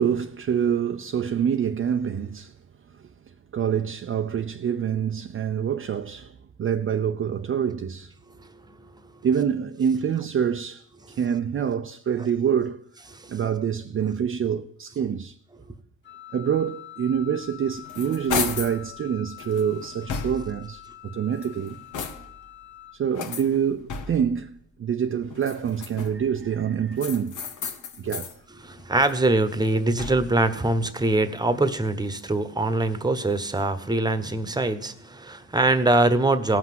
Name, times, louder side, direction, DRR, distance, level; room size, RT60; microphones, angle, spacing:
voice 1, 0.0-2.5 3.5-8.1 9.2-10.9 11.2-12.8 13.3-15.4 16.3-21.8 22.9-24.5 24.8-27.4 28.0-28.3, right 8 dB, 45° right, 0.7 m, -26 dB
voice 2, 8.3-8.9 11.1-11.2 13.1-13.4 28.6-36.6, right 2 dB, 15° right, 1.2 m, -23 dB
Wind instrument woodwind instrument, 16.0-23.0, left 13 dB, 35° left, 0.9 m, -45 dB
sound 1, 17.5-18.8 19.4-20.7 21.3-22.5 23.1-24.4 25.3-26.3 27.0-28.4 28.8-30.4, left 6 dB, 80° left, 1.5 m, -34 dB
17.0 x 6.0 x 7.5 m
cardioid pair, 90°, 30 cm